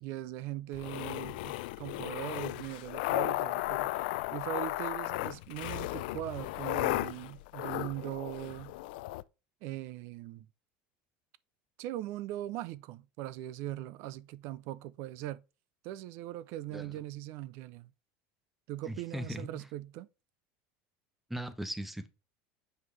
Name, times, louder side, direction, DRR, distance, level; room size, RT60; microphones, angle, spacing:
voice 1, 0.0-3.9 4.3-8.7 9.6-10.5 11.8-15.4 15.8-17.9 18.7-20.1, right 14 dB, 55° right, 0.4 m, -40 dB
sound 1, 0.7-9.2, left 19 dB, 80° left, 0.4 m, -35 dB
voice 2, 18.9-19.7 21.3-22.1, equal, 5° right, 0.7 m, -39 dB
7.8 x 5.4 x 3.2 m
supercardioid pair, 150°, 5 cm